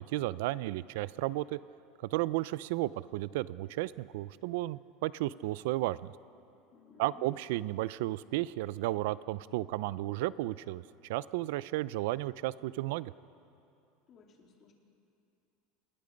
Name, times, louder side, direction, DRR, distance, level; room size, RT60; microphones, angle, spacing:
voice 1, 0.0-1.6 2.1-6.1 7.0-10.8 11.1-13.1, right 17 dB, 70° right, 18 dB, 0.4 m, -33 dB
voice 2, 6.7-7.3 14.1-14.7, left 5 dB, 30° left, 1 dB, 2.7 m, -58 dB
28.0 x 20.5 x 5.2 m, 2.6 s
supercardioid pair, 160°, 0 cm